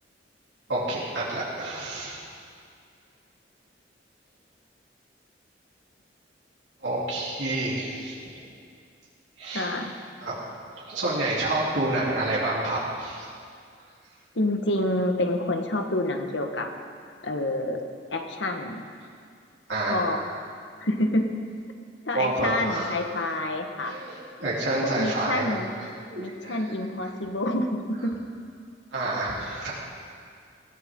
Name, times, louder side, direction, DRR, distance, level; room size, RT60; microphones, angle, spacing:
voice 1, 0.7-2.2 6.8-8.3 9.4-9.7 10.2-10.4 10.8-13.3 19.7-20.0 22.1-23.0 23.8-25.6 26.1-26.6 28.9-29.7, right 2 dB, 80° right, -7 dB, 3.4 m, -28 dB
voice 2, 9.5-9.9 14.3-16.7 17.2-17.8 18.1-18.8 19.8-20.2 20.8-21.3 22.0-23.9 24.8-25.7 26.2-28.2 29.5-29.6, left 1 dB, 80° left, 4 dB, 1.5 m, -28 dB
21.0 x 16.5 x 3.8 m, 2.2 s
head